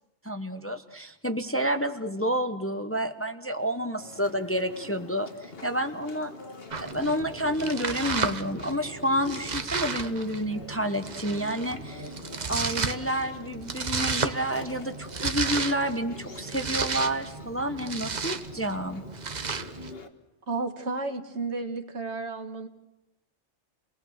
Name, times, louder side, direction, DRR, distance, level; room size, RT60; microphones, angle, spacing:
voice 1, 0.2-6.3 6.8-12.2 12.5-19.0, equal, 10° left, 7 dB, 1.0 m, -29 dB
Chewing mastication, 4.0-20.1, left 3 dB, 60° left, 1.7 m, -45 dB
Domestic sounds home sounds, 6.7-19.9, right 5 dB, 40° right, 1.0 m, -33 dB
voice 2, 20.5-22.7, right 3 dB, 70° right, 6 dB, 2.0 m, -32 dB
29.5 x 20.0 x 6.6 m, 0.90 s
omnidirectional pair, 1.2 m